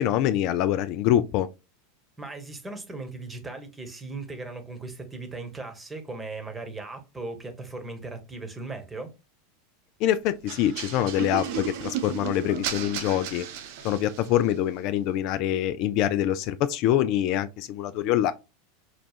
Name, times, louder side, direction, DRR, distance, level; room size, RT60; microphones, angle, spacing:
voice 1, 0.0-1.5 10.0-13.5 13.8-18.3, left 11 dB, 50° left, 0.3 m, -25 dB
voice 2, 2.2-9.1, right 3 dB, 15° right, 1.1 m, -38 dB
sound 1, 10.5-14.4, right 8 dB, 55° right, 0.6 m, -34 dB
5.0 x 2.3 x 2.4 m
hypercardioid pair, 90°, 0 cm